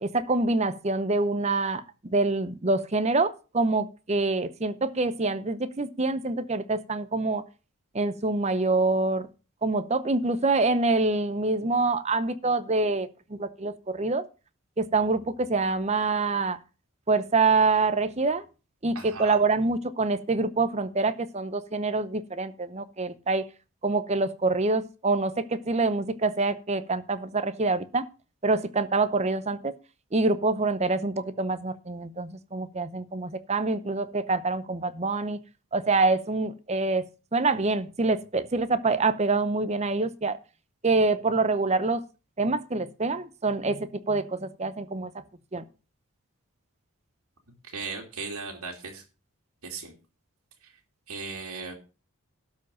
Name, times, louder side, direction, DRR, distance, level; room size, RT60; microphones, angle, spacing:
voice 1, 0.0-1.8 2.1-7.4 7.9-9.3 9.6-14.2 14.8-16.6 17.1-18.4 18.8-23.4 23.8-28.0 28.4-29.7 30.1-35.4 35.7-40.4 40.8-42.0 42.4-45.1 45.5-45.6, right 3 dB, 30° right, 13 dB, 0.7 m, -26 dB
voice 2, 18.9-19.4 47.7-49.0 49.6-49.9 51.1-51.7, right 4 dB, 75° right, 0 dB, 2.5 m, -37 dB
12.5 x 4.7 x 7.5 m, 0.33 s
head